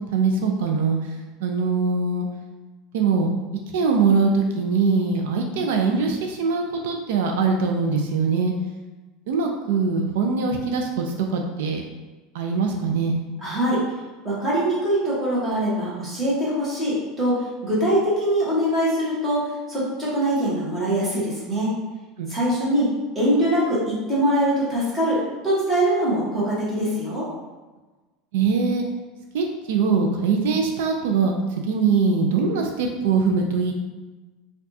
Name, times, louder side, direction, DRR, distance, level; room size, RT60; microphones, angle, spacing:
voice 1, 0.1-1.0 1.4-2.3 2.9-3.3 3.7-8.5 9.3-11.8 12.3-13.2 22.2-22.3 28.3-28.8 29.3-31.4 31.7-33.7, right 4 dB, 80° right, 2 dB, 0.4 m, -22 dB
voice 2, 13.4-13.8 14.2-21.7 22.3-27.3, right 1 dB, 10° right, -8 dB, 1.1 m, -23 dB
4.6 x 2.3 x 2.7 m, 1.2 s
supercardioid pair, 170°, 0 cm